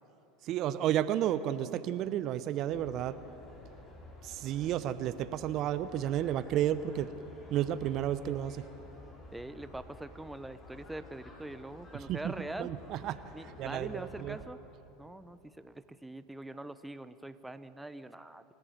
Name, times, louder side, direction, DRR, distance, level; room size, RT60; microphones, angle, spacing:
voice 1, 0.4-3.2 4.2-7.1 7.5-8.7 12.1-13.2 13.6-14.4, right 11 dB, 50° right, 14 dB, 0.9 m, -32 dB
sound 1, 2.7-14.4, left 1 dB, 30° left, 6.5 m, -52 dB
voice 2, 9.3-12.7 13.3-14.6 15.0-18.4, right 1 dB, 5° right, 12 dB, 0.9 m, -43 dB
27.5 x 14.5 x 9.3 m, 2.9 s
hypercardioid pair, 85°, 0 cm